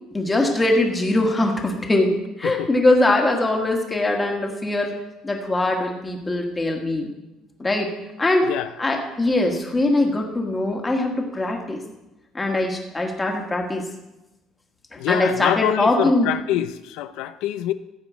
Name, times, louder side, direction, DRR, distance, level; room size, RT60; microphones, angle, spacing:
voice 1, 0.1-4.9 5.2-7.1 7.6-7.9 8.2-8.5 8.8-11.8 12.3-13.8 14.9-16.3, left 2 dB, 10° left, 1.5 m, -22 dB
voice 2, 8.4-8.7 15.0-17.7, left 12 dB, 90° left, 0.5 m, -25 dB
15.0 x 5.1 x 8.1 m
cardioid pair, 170°, 0 cm